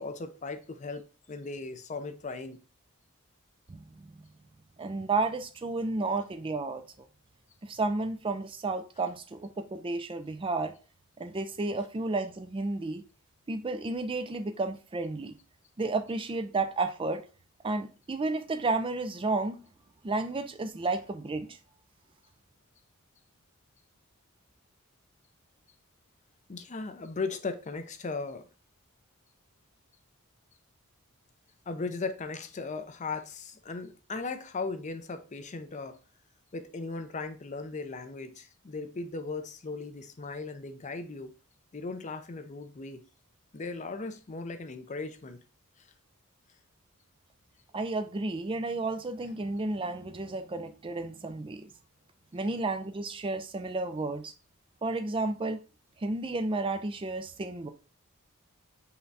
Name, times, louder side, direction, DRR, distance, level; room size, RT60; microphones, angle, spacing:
voice 1, 0.0-2.6 26.5-28.4 31.7-36.0 36.5-41.3 41.7-43.1 43.5-45.4, left 3 dB, 35° left, 0.5 m, -37 dB
voice 2, 3.7-4.2 4.8-7.1 7.6-10.7 11.2-13.0 13.5-15.3 15.8-17.2 17.6-19.6 20.0-21.6 47.7-51.7 52.3-54.3 54.8-55.6 56.0-57.7, right 3 dB, 25° right, 0.4 m, -32 dB
5.6 x 2.3 x 3.9 m
head